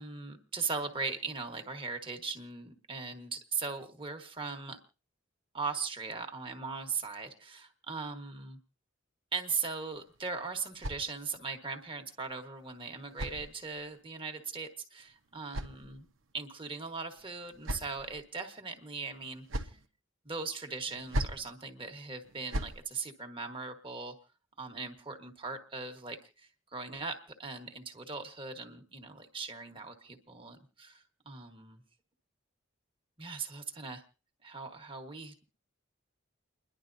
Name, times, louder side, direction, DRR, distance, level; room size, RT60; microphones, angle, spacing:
voice 1, 0.0-4.8 5.5-8.6 9.3-16.1 16.3-19.8 20.2-24.1 24.6-31.8 33.2-34.0 34.4-35.5, right 4 dB, 25° right, 5 dB, 1.4 m, -39 dB
sound 1, 9.9-11.6 12.6-14.0 15.0-16.3 17.2-18.2 19.1-19.9 20.9-21.5 22.2-22.8, right 1 dB, 85° right, 1.0 m, -40 dB
30.0 x 11.0 x 2.7 m, 0.35 s
head